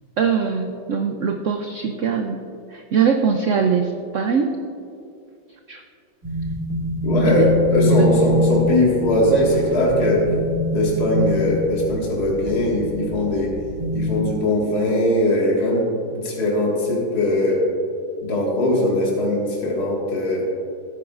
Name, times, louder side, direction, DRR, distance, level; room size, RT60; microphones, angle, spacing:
voice 1, 0.2-4.6 5.7-5.8 7.3-7.5 7.9-8.3, right 6 dB, 90° right, 4 dB, 0.6 m, -22 dB
sound 1, 6.2-14.2, left 1 dB, 45° right, 2.7 m, -24 dB
voice 2, 7.0-10.3 10.7-13.5 13.9-15.8 16.1-17.6 18.2-20.4, left 1 dB, 55° left, -4 dB, 2.4 m, -20 dB
16.5 x 9.3 x 2.5 m, 2.5 s
omnidirectional pair, 2.1 m